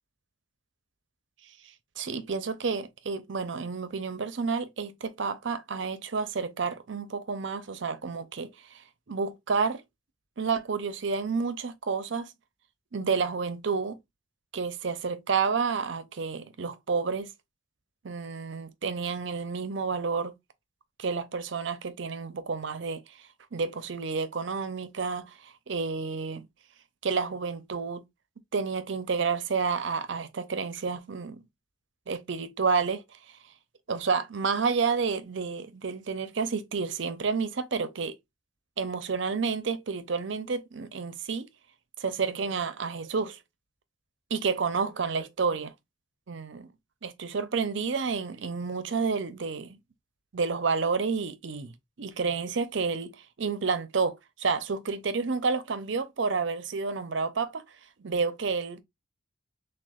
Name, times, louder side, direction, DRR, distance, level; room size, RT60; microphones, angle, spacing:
voice 1, 2.0-9.8 10.4-12.3 12.9-14.0 14.5-17.3 18.0-20.3 21.0-23.2 23.5-26.5 27.0-28.0 28.5-31.4 32.1-33.0 33.9-38.1 38.8-41.5 42.0-43.4 44.3-45.7 46.3-46.7 47.0-49.8 50.3-51.7 52.0-53.1 53.4-57.6 58.0-58.8, right 5 dB, 65° right, 0.6 m, -30 dB
6.2 x 2.3 x 2.4 m
head